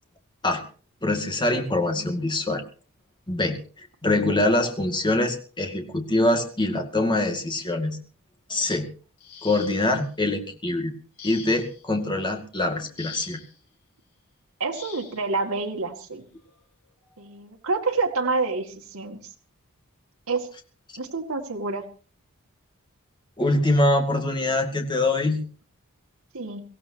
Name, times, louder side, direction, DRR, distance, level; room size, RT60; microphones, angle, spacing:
voice 1, 1.0-2.6 3.3-3.6 4.0-8.0 8.5-8.9 9.4-10.9 11.2-13.4 23.4-25.4, left 2 dB, 20° left, 4 dB, 2.2 m, -24 dB
sound 1, 9.2-10.1 11.2-11.8 13.0-13.5 14.7-15.2 16.4-16.5 17.1-17.3, left 7 dB, 85° left, 4.9 m, -43 dB
voice 2, 14.6-16.3 17.2-19.3 20.3-20.5 21.0-21.8 26.3-26.6, right 3 dB, 75° right, 1 dB, 2.3 m, -28 dB
23.5 x 16.0 x 2.9 m, 0.38 s
head